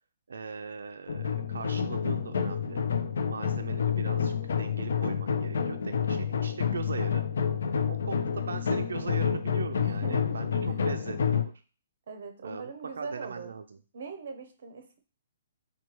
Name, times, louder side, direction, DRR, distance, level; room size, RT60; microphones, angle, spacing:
voice 1, 0.3-2.8 3.3-7.2 7.9-11.5 12.4-12.7 13.0-13.8, right 5 dB, 90° right, 7 dB, 0.3 m, -40 dB
sound 1, 1.1-11.5, left 7 dB, 70° left, 0.4 m, -29 dB
voice 2, 9.8-10.2 10.6-10.7 12.1-13.5 13.9-15.0, right 5 dB, 50° right, 7 dB, 0.7 m, -41 dB
4.4 x 2.3 x 3.0 m, 0.37 s
hypercardioid pair, 175°, 0 cm